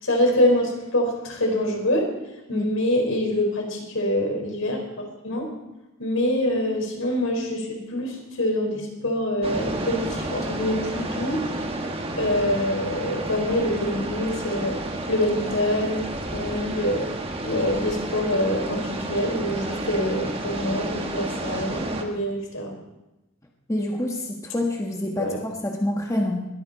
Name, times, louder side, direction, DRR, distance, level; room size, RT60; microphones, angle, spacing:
voice 1, 0.0-2.1 2.5-5.5 6.0-11.5 12.1-14.8 15.1-17.1 17.4-22.7 25.2-25.4, left 1 dB, 80° left, 1 dB, 4.3 m, -25 dB
sound 1, 9.4-22.0, right 1 dB, 25° right, 1.5 m, -31 dB
voice 2, 23.7-26.5, left 1 dB, 15° left, 0 dB, 1.4 m, -27 dB
21.0 x 14.0 x 4.1 m, 1.0 s
head